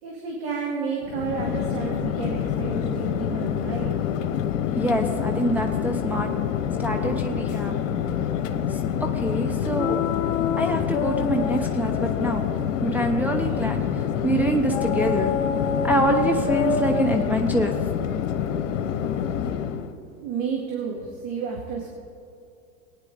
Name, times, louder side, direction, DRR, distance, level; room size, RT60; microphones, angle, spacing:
voice 1, 0.0-4.0 20.2-21.9, right 5 dB, 50° right, -1 dB, 2.2 m, -31 dB
Chatter / Fixed-wing aircraft airplane, 1.0-19.9, left 8 dB, 70° left, 1.0 m, -27 dB
voice 2, 4.7-6.3 6.8-7.8 8.7-10.0 10.6-12.5 12.8-15.3 15.8-17.7, right 1 dB, 5° right, 1 dB, 0.7 m, -25 dB
sound 1, 9.8-13.9 14.7-19.5, left 7 dB, 35° left, 0.9 m, -30 dB
18.5 x 9.8 x 3.9 m, 2.6 s
hypercardioid pair, 95°, 39 cm